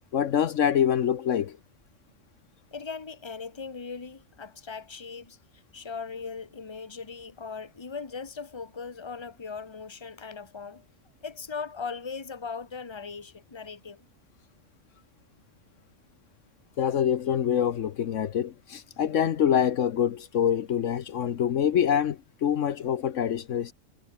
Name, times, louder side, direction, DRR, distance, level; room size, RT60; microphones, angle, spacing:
voice 1, 0.1-1.6 16.8-23.7, left 9 dB, 70° left, 1.2 m, -25 dB
voice 2, 2.7-10.8 11.2-14.1, left 5 dB, 20° left, 1.3 m, -39 dB
omnidirectional pair, 1.4 m